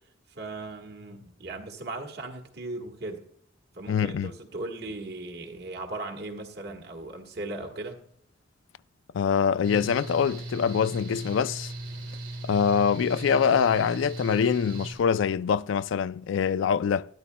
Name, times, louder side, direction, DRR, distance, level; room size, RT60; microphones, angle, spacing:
voice 1, 0.3-3.2 3.7-8.0, right 2 dB, 60° right, 1.5 m, -38 dB
voice 2, 3.9-4.3 9.1-11.7 12.4-17.1, left 7 dB, 80° left, 0.3 m, -24 dB
Mechanical fan, 9.6-14.9, right 1 dB, 85° right, 2.9 m, -38 dB
12.5 x 11.0 x 2.2 m
head